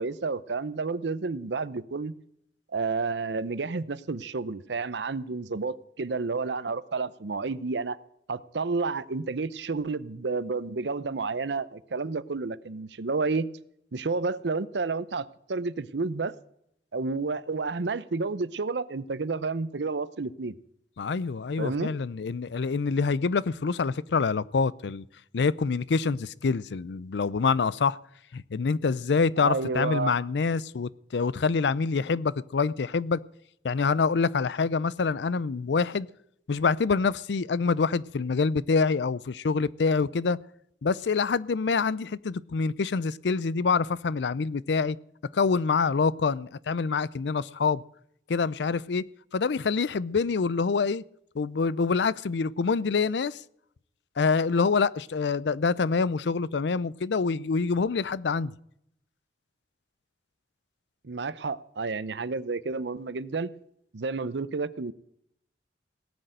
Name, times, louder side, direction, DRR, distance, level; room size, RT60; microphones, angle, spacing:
voice 1, 0.0-2.1 2.7-8.0 8.3-13.5 13.9-16.3 16.9-20.5 21.6-21.9 29.4-30.2 61.0-63.5 63.9-64.9, right 4 dB, 75° right, 0.7 m, -30 dB
voice 2, 21.0-25.0 25.3-28.0 28.3-33.2 33.6-36.1 36.5-40.4 40.8-45.0 45.3-47.8 48.3-49.1 49.3-51.0 51.3-53.4 54.2-58.5, left 5 dB, 75° left, 0.5 m, -26 dB
18.0 x 6.7 x 9.0 m
head